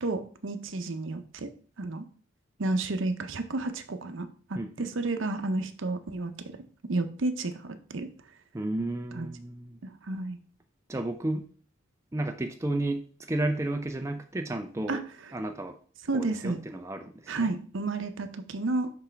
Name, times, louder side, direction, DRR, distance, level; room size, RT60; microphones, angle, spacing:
voice 1, 0.0-1.5 1.8-2.0 2.6-6.6 6.9-8.1 9.1-9.3 9.8-10.4 14.9-15.0 16.1-16.6 17.3-18.9, right 2 dB, 65° right, 0.7 m, -31 dB
voice 2, 4.5-4.9 8.5-9.8 10.9-11.5 12.1-15.0 15.3-15.8 16.1-17.5, right 1 dB, 15° right, 0.4 m, -32 dB
5.9 x 5.6 x 3.4 m
head